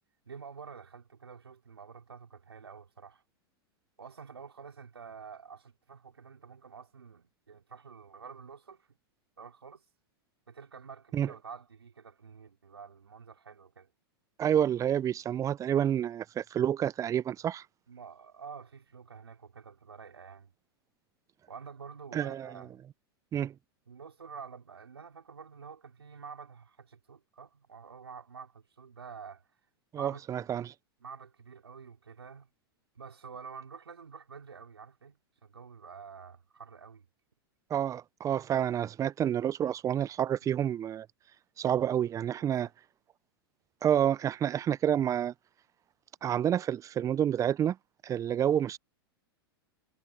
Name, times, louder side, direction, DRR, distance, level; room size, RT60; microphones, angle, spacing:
voice 1, 0.2-3.2 4.0-8.9 9.4-9.8 10.5-13.9 17.9-20.5 21.5-22.7 23.9-29.4 29.9-30.6 31.0-32.5 32.9-37.1 42.4-42.7, right 6 dB, 90° right, 4.8 m, -48 dB
voice 2, 14.4-17.6 22.1-22.5 23.3-23.5 29.9-30.7 37.7-41.1 41.6-42.7 43.8-45.3 46.2-47.8 48.0-48.8, right 10 dB, 25° right, 0.6 m, -29 dB
hypercardioid pair, 105°, 13 cm